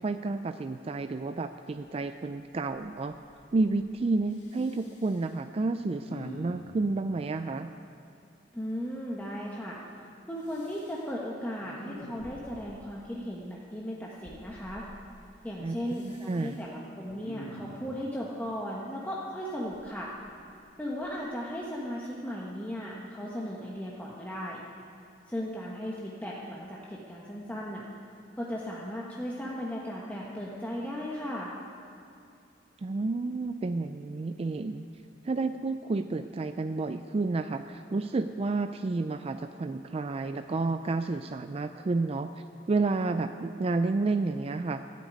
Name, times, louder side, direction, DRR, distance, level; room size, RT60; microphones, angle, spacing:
voice 1, 0.0-3.1 3.5-7.7 15.6-16.6 32.8-34.9 35.2-44.8, right 3 dB, 35° right, 8 dB, 0.3 m, -30 dB
Respiratory sounds, 2.5-2.9 3.2-3.9 4.3-5.3 6.0-6.8 10.4-11.0 11.6-12.7 14.2-14.8 15.9-16.6 17.1-17.9 19.7-20.6 21.0-21.2, equal, 90° left, 2.7 m, -47 dB
voice 2, 8.5-9.8 10.3-14.8 15.4-20.1 20.8-24.6 25.3-27.8 28.4-31.5, equal, 10° left, -5 dB, 1.2 m, -36 dB
13.5 x 8.3 x 9.4 m, 2.7 s
head